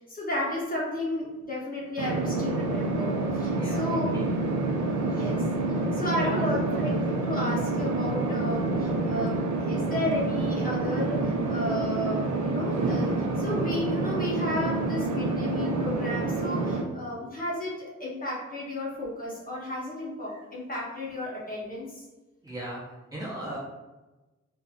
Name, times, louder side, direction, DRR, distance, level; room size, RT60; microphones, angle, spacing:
voice 1, 0.1-4.1 5.1-5.4 5.9-6.9 7.2-9.4 9.6-11.2 11.5-13.1 13.4-22.0, left 1 dB, 30° left, -5 dB, 0.7 m, -33 dB
sound 1, 2.0-16.8, right 2 dB, 85° right, 0.5 m, -28 dB
voice 2, 3.5-4.3 5.1-5.4 5.8-6.6 22.4-22.8 23.1-23.6, right 1 dB, 10° right, -8 dB, 0.6 m, -38 dB
2.6 x 2.3 x 2.3 m, 1.1 s
wide cardioid pair, 110°, 29 cm